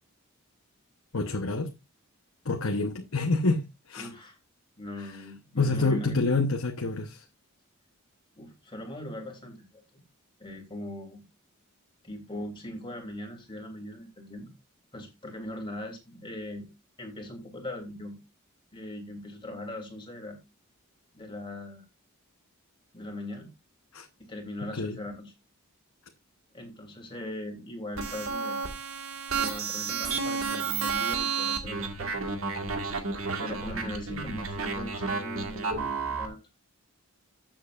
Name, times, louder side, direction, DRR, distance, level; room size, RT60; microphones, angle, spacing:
voice 1, 1.1-1.7 2.4-4.1 5.0-5.1 5.6-7.2 23.9-24.1 24.8-25.0, left 3 dB, 70° left, 1.1 m, -27 dB
voice 2, 4.0-4.4 4.8-6.2 8.3-10.0 10.4-11.2 12.0-14.5 14.9-16.7 17.0-18.2 18.7-20.4 21.1-21.8 22.9-23.5 24.2-25.3 26.5-28.6 29.3-32.3 33.4-36.4, left 1 dB, 20° left, 3.2 m, -40 dB
sound 1, 28.0-36.3, right 5 dB, 70° right, 1.8 m, -31 dB
13.0 x 7.9 x 2.5 m
head